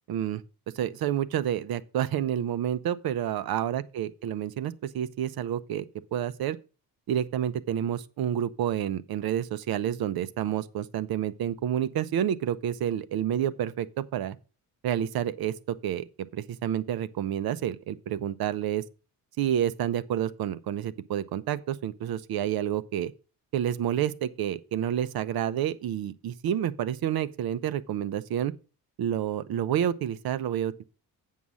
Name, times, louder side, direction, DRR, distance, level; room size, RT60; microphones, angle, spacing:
voice 1, 0.1-0.4 0.7-5.9 6.1-6.6 7.1-14.4 14.8-18.8 19.4-23.1 23.5-28.5 29.0-30.8, right 10 dB, 70° right, 0.7 m, -29 dB
8.5 x 5.6 x 6.2 m
cardioid pair, 140°, 37 cm